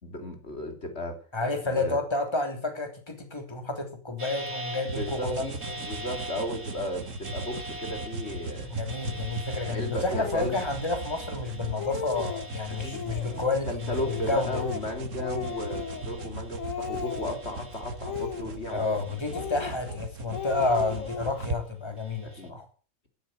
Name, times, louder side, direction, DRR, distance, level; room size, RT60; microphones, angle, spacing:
voice 1, 0.0-1.2 1.8-2.0 4.9-8.7 9.6-10.6 12.8-13.2 13.7-18.9 22.2-22.5, left 1 dB, 55° left, 5 dB, 3.5 m, -34 dB
voice 2, 1.3-5.8 8.7-14.6 18.7-22.7, left 3 dB, 20° left, 5 dB, 3.4 m, -30 dB
sound 1, 4.2-16.8 17.1-18.3 18.7-19.9 20.3-21.4 22.0-22.5, right 1 dB, 55° right, 3.3 m, -44 dB
sound 2, 4.9-21.6, right 3 dB, 70° right, 1.7 m, -38 dB
Speech, 10.2-10.5 11.2-11.3 11.6-12.5 12.9-13.5 14.0-16.3 16.6-17.5 18.0-19.0 19.3-20.0 20.3-21.5, left 7 dB, 80° left, 1.8 m, -37 dB
13.5 x 12.0 x 7.9 m, 0.39 s
omnidirectional pair, 1.4 m